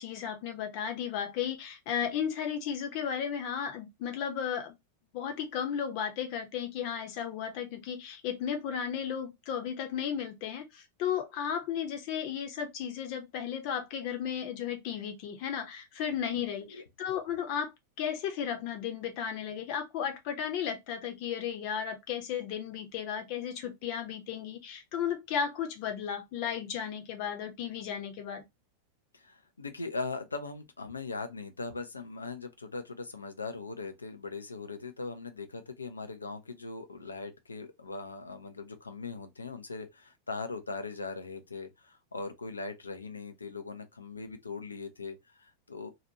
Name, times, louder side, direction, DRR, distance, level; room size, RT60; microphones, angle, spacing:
voice 1, 0.0-4.7 5.1-17.7 18.0-28.4, left 8 dB, 45° left, 0.8 m, -34 dB
voice 2, 16.4-16.8 29.1-45.9, left 3 dB, 75° left, 0.5 m, -40 dB
2.8 x 2.4 x 2.8 m
figure-of-eight pair, 90°, 0 cm